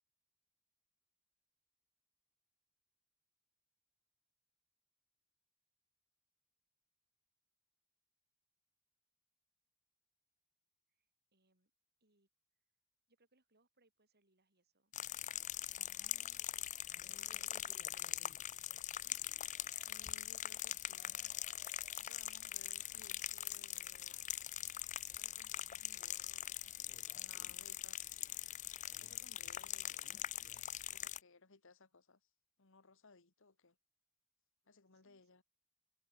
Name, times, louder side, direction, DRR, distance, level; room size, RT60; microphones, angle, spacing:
voice 1, 10.9-11.7 12.0-12.3 13.1-14.9 15.3-18.2 34.9-35.3, right 2 dB, 50° right, 7.1 m, -78 dB
sound 1, 14.9-31.2, left 12 dB, 35° left, 0.5 m, -43 dB
voice 2, 19.8-21.2 22.0-24.2 25.1-28.4 29.0-30.1 30.9-32.3 32.6-33.8 34.6-35.4, left 4 dB, 65° left, 1.7 m, -64 dB
head